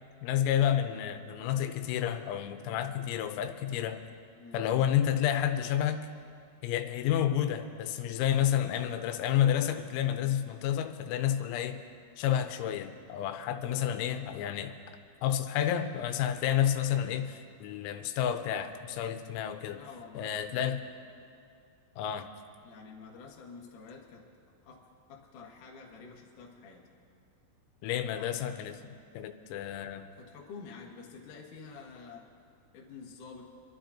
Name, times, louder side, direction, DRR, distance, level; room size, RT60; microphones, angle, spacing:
voice 1, 0.2-4.0 4.5-6.1 6.6-11.8 12.2-14.7 15.2-19.8 20.1-20.8 22.0-22.3 27.8-28.8 29.1-30.0, left 10 dB, 90° left, 8 dB, 3.5 m, -30 dB
voice 2, 19.7-20.3 22.6-24.3 24.6-24.8 25.1-26.9 28.0-28.4 30.2-32.3 32.7-33.4, left 5 dB, 65° left, -2 dB, 2.1 m, -48 dB
28.5 x 11.5 x 2.8 m, 2.4 s
omnidirectional pair, 6.0 m